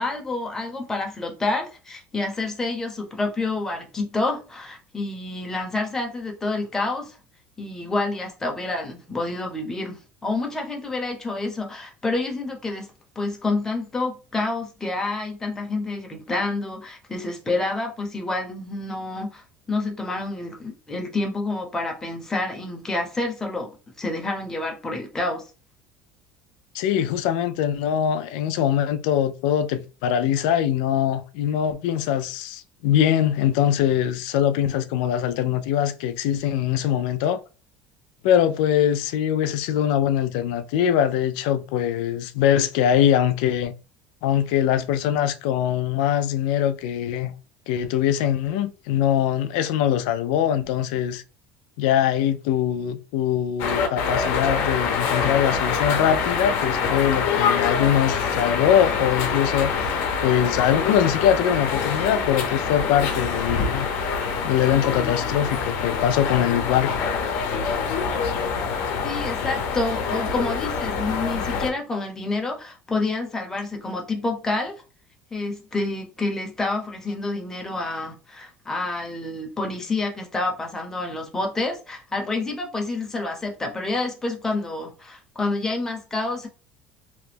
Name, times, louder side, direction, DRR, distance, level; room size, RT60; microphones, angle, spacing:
voice 1, 0.0-7.2 7.6-12.9 13.1-25.5 69.0-74.8 75.3-86.5, left 2 dB, 10° left, 0.8 m, -28 dB
voice 2, 26.7-37.4 38.2-43.7 44.2-47.3 47.7-51.2 51.8-63.9 64.4-66.9, left 10 dB, 85° left, 0.4 m, -22 dB
sound 1, 53.6-71.7, left 5 dB, 70° left, 0.7 m, -25 dB
2.9 x 2.2 x 3.3 m
cardioid pair, 140°, 4 cm